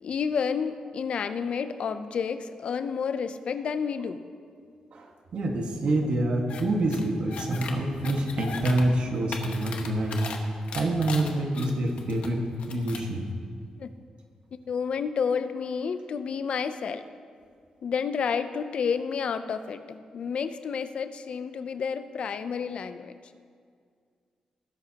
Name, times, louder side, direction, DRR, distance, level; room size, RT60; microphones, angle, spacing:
voice 1, 0.0-4.2 13.8-13.9 14.7-17.0 17.8-23.2, left 6 dB, 60° left, 11 dB, 0.5 m, -30 dB
voice 2, 4.9-10.3 10.7-13.3, right 1 dB, 65° right, 2 dB, 1.6 m, -27 dB
sound 1, 6.5-6.6 6.9-7.7 8.0-8.8 9.1-10.4 10.7-12.3 12.6-13.1, left 5 dB, 80° left, 1.1 m, -38 dB
19.5 x 11.0 x 2.9 m, 2.1 s
wide cardioid pair, 125°, 2 cm